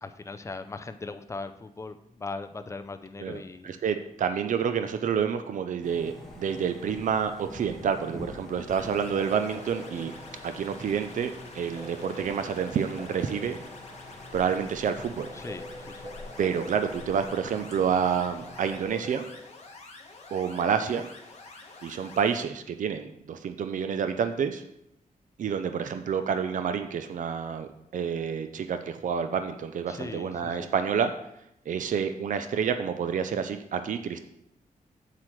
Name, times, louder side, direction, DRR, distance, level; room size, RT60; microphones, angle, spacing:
voice 1, 0.0-3.7 15.3-16.1 29.9-30.7, left 3 dB, 20° left, 8 dB, 0.4 m, -39 dB
voice 2, 3.2-10.1 10.4-13.6 14.3-15.3 16.4-19.3 20.3-21.1 21.8-24.6 25.4-31.1 31.7-34.2, right 7 dB, 65° right, 9 dB, 0.5 m, -29 dB
sound 1, 5.8-18.9, left 2 dB, ahead, 1.7 m, -46 dB
sound 2, 8.7-22.4, left 3 dB, 50° left, 1.4 m, -48 dB
sound 3, 9.2-19.5, right 1 dB, 30° right, 0.9 m, -46 dB
7.5 x 7.5 x 3.2 m, 0.79 s
wide cardioid pair, 150°, 14 cm